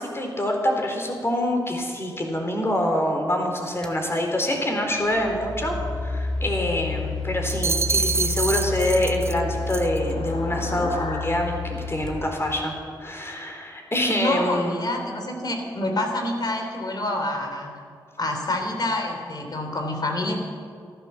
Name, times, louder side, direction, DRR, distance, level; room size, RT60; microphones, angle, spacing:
voice 1, 0.0-5.7 6.0-12.7 13.0-14.9, left 1 dB, 30° left, 2 dB, 3.9 m, -25 dB
sound 1, 3.8-4.0 4.9-12.9, left 3 dB, 10° left, 1.8 m, -31 dB
sound 2, 7.5-9.4 9.7-10.0, right 4 dB, 30° right, 0.5 m, -26 dB
sound 3, 8.4-13.1, left 3 dB, 85° left, 1.8 m, -38 dB
voice 2, 14.2-17.7 18.2-20.4, left 1 dB, 50° left, 3 dB, 3.3 m, -27 dB
13.5 x 12.5 x 7.2 m, 2.2 s
cardioid pair, 50°, 9 cm